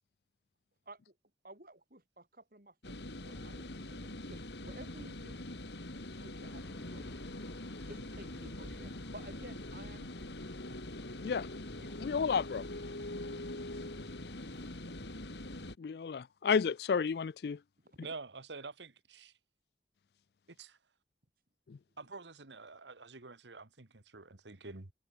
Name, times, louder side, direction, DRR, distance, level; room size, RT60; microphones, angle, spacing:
voice 1, 1.4-5.4 6.1-7.3 7.9-10.8 11.2-11.5 11.8-12.3 17.8-18.0, right 2 dB, 55° right, 4.6 m, -54 dB
sound 1, 2.8-15.8, left 1 dB, 80° left, 2.9 m, -43 dB
sound 2, 6.4-14.8, equal, 10° left, 3.1 m, -58 dB
voice 2, 12.0-12.6 15.8-17.6 21.7-21.8, left 6 dB, 65° left, 0.4 m, -31 dB
voice 3, 18.0-19.4 20.5-20.8 22.0-24.9, right 3 dB, 85° right, 1.8 m, -48 dB
head